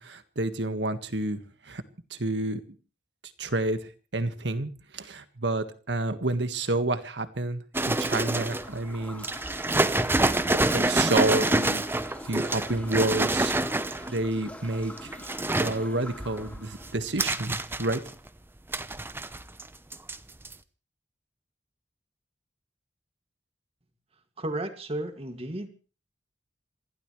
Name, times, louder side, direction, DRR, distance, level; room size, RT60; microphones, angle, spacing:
voice 1, 0.0-1.4 1.7-1.8 2.1-2.6 3.4-3.8 4.1-9.7 10.4-11.9 12.3-13.5 14.1-15.2 15.6-18.0, right 2 dB, 75° right, 10 dB, 1.7 m, -29 dB
sound 1, 7.7-8.7 9.2-14.2 14.9-15.8 16.2-18.3 18.7-19.7 19.9-20.2 20.4-20.5, right 2 dB, 15° right, 0.8 m, -27 dB
sound 2, 8.3-16.9, left 1 dB, 10° left, 3.4 m, -44 dB
voice 2, 24.4-25.7, right 1 dB, 35° right, 7 dB, 2.3 m, -33 dB
27.0 x 16.0 x 3.3 m, 0.37 s
head